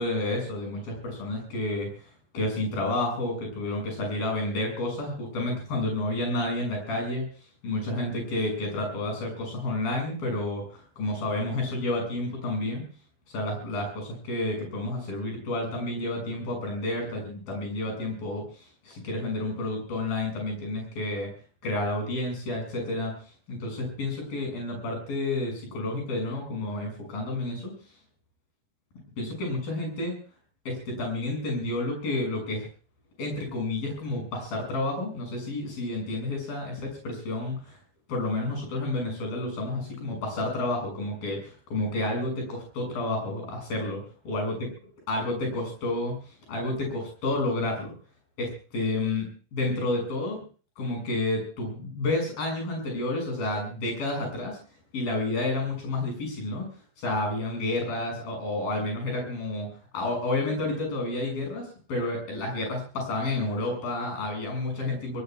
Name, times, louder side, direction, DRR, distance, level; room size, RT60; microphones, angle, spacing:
voice 1, 0.0-1.9 2.3-7.3 7.6-12.9 13.3-18.5 18.8-21.3 21.6-23.2 23.5-27.7 29.2-30.1 30.7-32.7 33.2-37.8 38.1-44.6 45.1-46.2 46.5-47.9 48.4-50.4 50.8-54.6 54.9-56.7 57.0-59.7 59.9-65.2, left 2 dB, 80° left, 2 dB, 8.4 m, -30 dB
27.5 x 18.0 x 2.4 m, 0.38 s
omnidirectional pair, 4.0 m